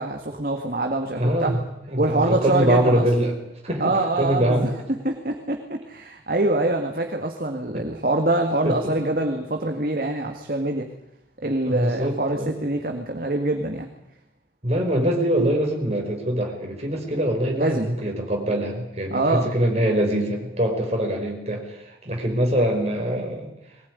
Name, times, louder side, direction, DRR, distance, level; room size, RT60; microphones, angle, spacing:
voice 1, 0.0-1.5 2.0-3.1 3.8-4.7 5.0-10.9 11.4-13.9 17.6-17.9 19.1-19.5, right 2 dB, 50° right, 4 dB, 1.9 m, -24 dB
voice 2, 1.1-1.6 1.9-3.3 3.6-4.7 7.7-7.8 8.6-8.8 11.6-12.5 14.6-23.5, right 1 dB, 35° right, 1 dB, 5.2 m, -23 dB
21.5 x 19.0 x 9.6 m, 0.86 s
head